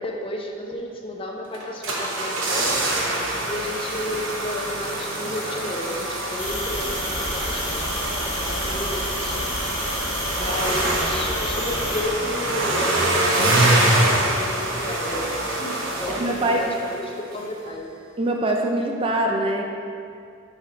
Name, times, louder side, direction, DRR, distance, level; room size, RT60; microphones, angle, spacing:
voice 1, 0.0-2.9 3.4-10.0 10.4-17.9, left 1 dB, 25° left, 1 dB, 0.5 m, -32 dB
sound 1, 1.5-17.0 17.3-17.4, right 1 dB, 75° right, 1.0 m, -25 dB
sound 2, 6.4-12.0, left 2 dB, 65° left, 1.3 m, -31 dB
voice 2, 16.1-16.6 18.2-19.6, right 1 dB, 25° right, 2 dB, 0.4 m, -23 dB
6.8 x 3.6 x 4.5 m, 2.5 s
head